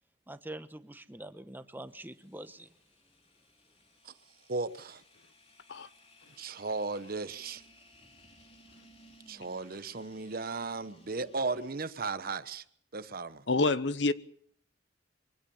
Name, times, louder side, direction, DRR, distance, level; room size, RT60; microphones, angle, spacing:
voice 1, 0.3-2.7, right 1 dB, 10° right, 1.0 m, -45 dB
sound 1, 1.9-12.0, left 1 dB, 35° left, 3.7 m, -60 dB
voice 2, 4.5-5.0 6.4-7.6 9.3-12.6 12.9-13.4, right 3 dB, 55° right, 1.0 m, -35 dB
voice 3, 13.5-14.1, left 3 dB, 70° left, 0.9 m, -27 dB
23.5 x 17.5 x 7.2 m
head